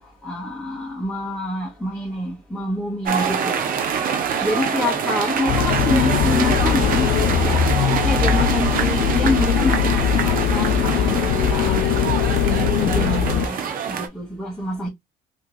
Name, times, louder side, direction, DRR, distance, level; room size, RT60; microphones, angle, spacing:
voice 1, 0.2-3.6 4.4-7.1 7.4-7.6 8.0-11.9 12.4-14.9, left 1 dB, ahead, 1.6 m, -27 dB
sound 1, 3.1-14.1, right 7 dB, 55° right, 0.9 m, -25 dB
sound 2, 5.5-13.5, left 9 dB, 70° left, 0.5 m, -20 dB
3.6 x 3.2 x 2.4 m
cardioid pair, 110°, 17 cm